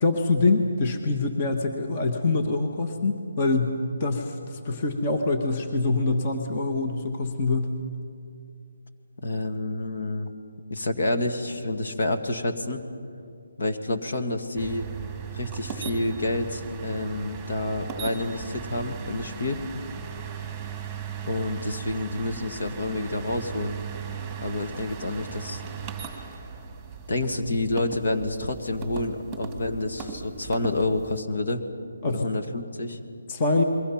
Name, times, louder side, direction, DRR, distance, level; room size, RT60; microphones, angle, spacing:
voice 1, 0.0-7.8 32.0-32.3 33.3-33.6, left 3 dB, 25° left, 4 dB, 1.3 m, -25 dB
voice 2, 9.2-10.3 10.7-12.8 13.6-14.9 15.3-19.6 21.2-23.8 24.4-25.6 27.1-31.6 32.0-33.0, left 2 dB, 60° left, 7 dB, 2.0 m, -28 dB
sound 1, 14.5-31.2, right 7 dB, 5° right, 2.1 m, -38 dB
29.0 x 22.5 x 5.9 m, 2.4 s
hypercardioid pair, 170°, 0 cm